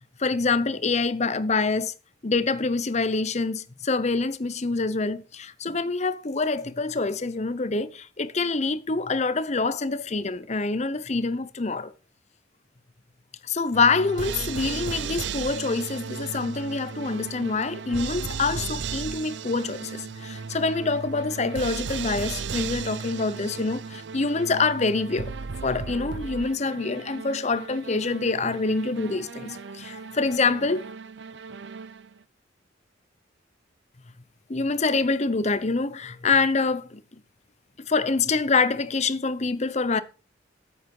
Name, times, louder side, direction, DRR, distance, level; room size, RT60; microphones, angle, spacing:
voice 1, 0.2-1.9 2.2-11.9 13.4-25.3 25.6-30.9 34.5-37.0 37.8-40.0, left 4 dB, 35° left, 0.7 m, -26 dB
sound 1, 13.7-32.2, right 5 dB, 65° right, 0.5 m, -35 dB
9.0 x 8.6 x 5.4 m
head